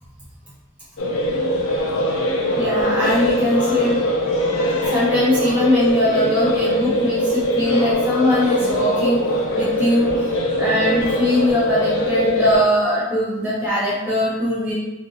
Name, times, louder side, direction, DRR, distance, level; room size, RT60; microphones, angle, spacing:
sound 1, 1.0-12.6, equal, 75° left, 0.5 m, -21 dB
voice 1, 2.6-4.0 4.9-9.2 9.6-10.1 10.6-14.7, left 1 dB, 5° right, -8 dB, 0.5 m, -21 dB
2.4 x 2.3 x 2.9 m, 1.0 s
head